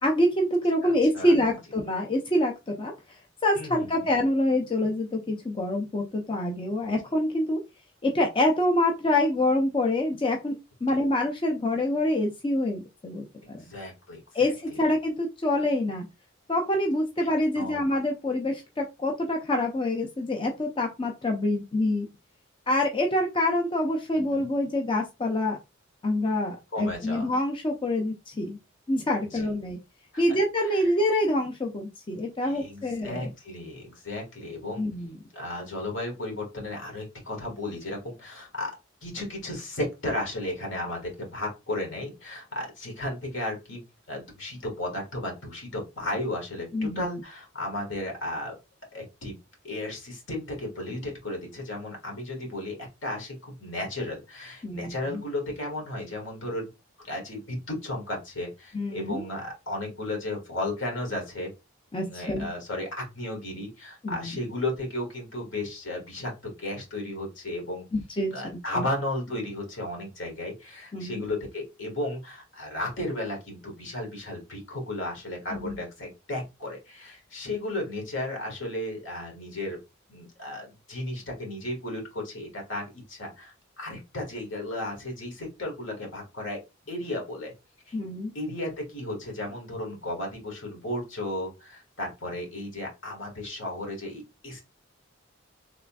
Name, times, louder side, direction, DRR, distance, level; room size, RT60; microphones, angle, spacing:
voice 1, 0.0-2.9 3.4-7.6 8.0-10.5 10.8-13.6 14.3-16.1 16.5-22.1 22.7-25.6 26.0-28.6 28.9-29.8 30.2-33.3 34.8-35.1 46.7-47.0 54.6-55.2 58.7-59.2 61.9-62.5 64.0-64.4 67.9-68.9 70.9-71.3 75.5-75.8 87.9-88.3, left 1 dB, 25° left, 1 dB, 0.5 m, -26 dB
voice 2, 0.8-1.4 3.5-4.1 6.8-6.9 10.9-11.0 13.4-14.8 17.2-17.3 17.5-17.8 24.1-24.5 26.7-27.3 29.3-29.5 30.1-30.2 30.6-30.9 32.4-34.8 35.3-38.7 39.0-43.8 44.1-46.7 46.9-48.5 48.9-49.3 49.6-56.7 57.0-61.5 62.1-67.8 68.3-79.8 80.1-86.6 86.9-87.5 87.9-88.0 88.3-94.6, left 1 dB, 70° left, 1 dB, 1.7 m, -34 dB
3.7 x 3.3 x 2.3 m, 0.25 s
head